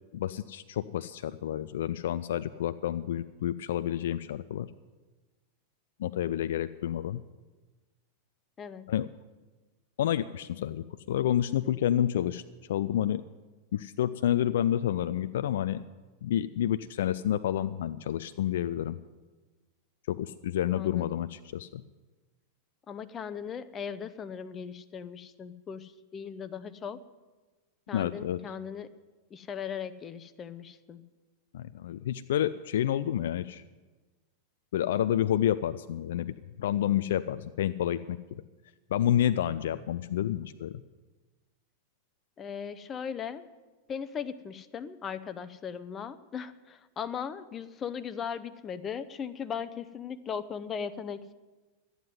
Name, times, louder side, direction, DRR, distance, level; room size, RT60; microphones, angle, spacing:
voice 1, 0.1-4.7 6.0-7.2 8.9-9.1 10.0-12.4 12.7-13.2 13.7-15.8 16.2-19.0 20.1-21.8 27.9-28.4 31.5-33.6 34.7-38.4 38.9-40.8, left 11 dB, 60° left, 12 dB, 0.4 m, -29 dB
voice 2, 20.7-21.2 22.9-27.0 27.9-28.9 29.3-31.0 42.4-43.5 43.9-51.3, left 7 dB, 25° left, 13 dB, 0.7 m, -38 dB
12.0 x 9.5 x 9.5 m, 1.2 s
figure-of-eight pair, 90°, 0 cm